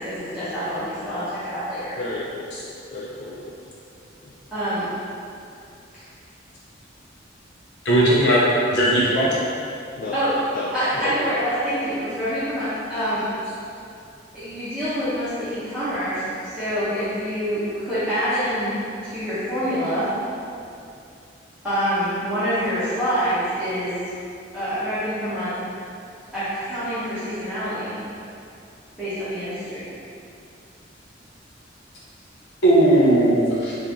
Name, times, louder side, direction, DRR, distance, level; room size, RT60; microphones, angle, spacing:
voice 1, 0.0-1.9 4.5-4.9 10.1-10.3 10.7-13.2 14.3-18.7 19.0-20.1 21.6-24.0 24.5-25.6 26.3-28.0 29.0-29.8, equal, 5° right, -16 dB, 1.0 m, -26 dB
voice 2, 2.0-2.5 2.9-3.7 4.2-4.3 10.0-10.2 10.5-11.3, left 2 dB, 45° left, -5 dB, 0.4 m, -32 dB
voice 3, 7.8-8.4 8.7-9.4 32.6-33.7, right 1 dB, 65° left, -7 dB, 0.8 m, -17 dB
4.3 x 2.6 x 3.5 m, 2.5 s
head